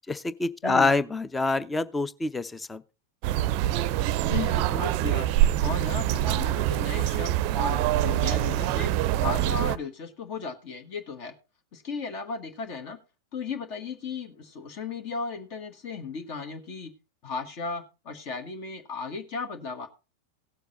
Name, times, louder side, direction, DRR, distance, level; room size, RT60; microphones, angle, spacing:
voice 1, 0.1-2.8, left 3 dB, 10° left, 0.7 m, -26 dB
sound 1, 3.2-9.8, right 13 dB, 45° right, 0.6 m, -25 dB
voice 2, 4.2-5.3 5.6-8.9 9.2-11.3 11.7-13.0 13.3-16.9 17.2-19.9, left 4 dB, 45° left, 1.6 m, -35 dB
17.0 x 7.0 x 4.1 m
figure-of-eight pair, 90°, 0 cm